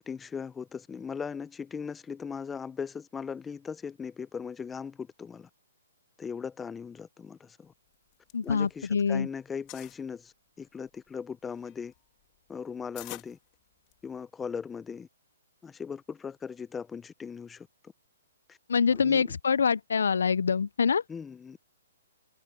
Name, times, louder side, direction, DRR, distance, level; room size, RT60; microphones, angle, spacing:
voice 1, 0.0-5.5 6.2-7.7 8.4-11.9 12.5-13.4 14.0-15.1 15.6-17.9 18.5-18.6 18.9-19.3 21.1-21.6, left 6 dB, 10° left, 0.6 m, -39 dB
sound 1, 7.9-9.1 9.4-10.0 10.6-14.2, left 24 dB, 30° left, 2.7 m, -48 dB
voice 2, 8.3-9.3 18.7-21.0, left 6 dB, 85° left, 0.4 m, -25 dB
hypercardioid pair, 150°, 0 cm